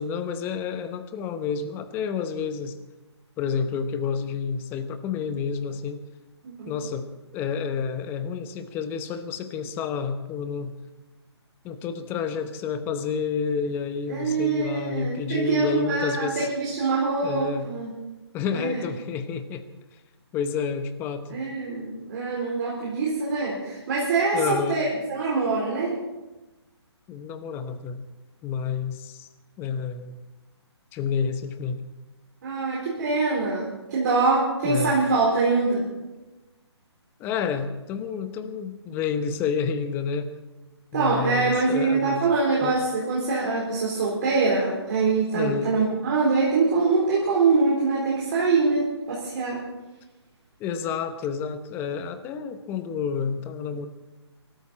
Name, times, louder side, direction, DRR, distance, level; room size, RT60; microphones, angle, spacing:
voice 1, 0.0-2.8 3.4-6.0 6.7-7.1 7.3-10.8 11.6-16.5 17.2-17.7 18.3-19.7 20.3-21.4 24.3-24.8 27.1-28.0 28.4-29.3 29.6-30.2 30.9-31.8 34.6-35.0 37.2-40.3 40.9-42.3 42.6-42.8 45.3-45.7 50.6-53.9, left 6 dB, 15° left, 10 dB, 0.9 m, -29 dB
voice 2, 14.1-17.9 18.5-18.8 21.3-26.0 32.4-35.9 40.9-49.6, right 4 dB, 40° right, -5 dB, 4.1 m, -24 dB
23.0 x 13.0 x 4.3 m, 1.1 s
hypercardioid pair, 155°, 15 cm